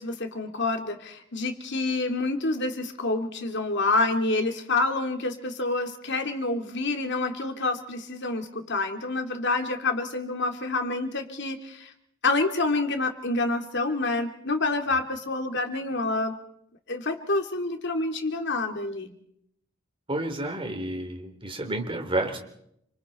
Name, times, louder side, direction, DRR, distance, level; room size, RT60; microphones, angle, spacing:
voice 1, 0.0-11.9 12.2-16.4 16.9-19.1, left 2 dB, 55° left, 5 dB, 2.8 m, -28 dB
voice 2, 20.1-22.4, right 2 dB, 25° right, 4 dB, 3.8 m, -30 dB
29.0 x 26.5 x 4.4 m, 0.72 s
head